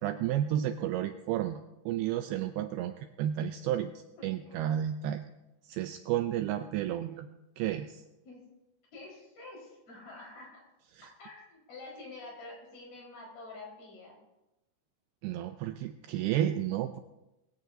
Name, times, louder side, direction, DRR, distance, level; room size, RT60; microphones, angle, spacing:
voice 1, 0.0-1.6 1.9-3.9 4.2-5.3 5.7-7.3 7.6-8.0 15.2-17.0, right 11 dB, 80° right, 8 dB, 2.3 m, -31 dB
voice 2, 4.2-4.6 8.2-8.4 8.9-10.6 11.2-14.2, left 2 dB, 55° left, -2 dB, 6.4 m, -48 dB
21.5 x 16.0 x 2.7 m, 0.96 s
omnidirectional pair, 5.0 m